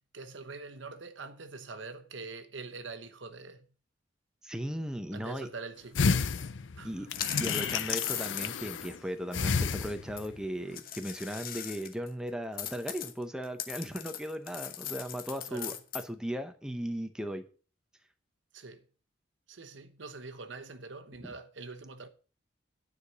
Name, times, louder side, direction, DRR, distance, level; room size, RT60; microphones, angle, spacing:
voice 1, 0.1-3.7 5.1-6.1 6.8-7.1 15.5-15.8 18.5-18.8 19.5-22.1, right 3 dB, 70° right, 1.0 m, -44 dB
voice 2, 4.4-5.5 6.8-7.1 7.4-17.4, equal, 5° right, 0.8 m, -37 dB
sound 1, 6.0-9.0 9.3-10.4 10.7-10.8, left 5 dB, 75° left, 0.6 m, -31 dB
sound 2, 7.1-8.8 10.2-10.3 10.7-12.1 12.6-16.0, left 10 dB, 50° left, 1.0 m, -38 dB
9.6 x 4.9 x 6.8 m
head